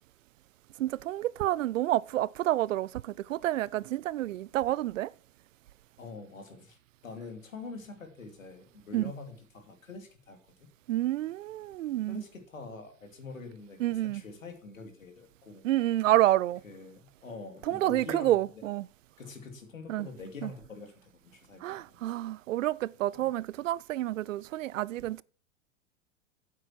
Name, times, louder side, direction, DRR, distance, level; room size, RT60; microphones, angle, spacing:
voice 1, 0.8-5.1 8.9-9.1 10.9-12.2 13.8-14.2 15.6-16.6 17.6-18.9 19.9-20.1 20.4-20.5 21.6-25.2, right 14 dB, 75° right, 0.5 m, -29 dB
voice 2, 6.0-6.8 7.0-10.7 12.1-15.6 16.6-18.4 19.2-22.0 23.1-23.3 25.0-25.1, left 4 dB, 85° left, 2.5 m, -45 dB
8.9 x 8.4 x 4.4 m
hypercardioid pair, 95°, 39 cm